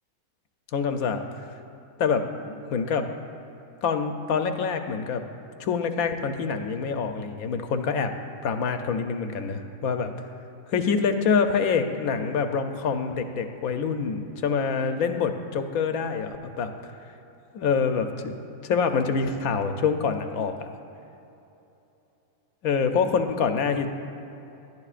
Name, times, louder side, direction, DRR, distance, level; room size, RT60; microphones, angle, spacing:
voice 1, 0.7-1.2 2.0-3.1 3.8-5.2 5.6-8.1 8.4-10.1 10.7-16.7 17.5-18.3 18.6-20.7 22.6-23.9, left 5 dB, 80° left, 7 dB, 1.2 m, -26 dB
21.5 x 10.5 x 2.5 m, 2.9 s
omnidirectional pair, 1.5 m